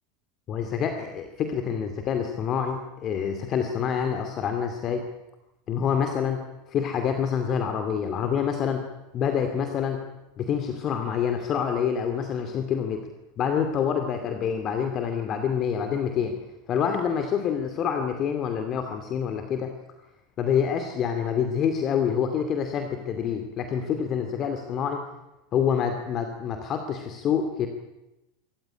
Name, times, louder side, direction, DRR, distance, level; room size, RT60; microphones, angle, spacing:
voice 1, 0.5-5.0 5.7-6.4 6.7-8.8 9.1-10.0 10.4-13.1 13.4-16.4 16.7-19.7 20.4-25.0 25.5-27.7, left 7 dB, 40° left, 6 dB, 2.5 m, -27 dB
25.5 x 14.5 x 9.9 m, 0.97 s
hypercardioid pair, 85°, 0 cm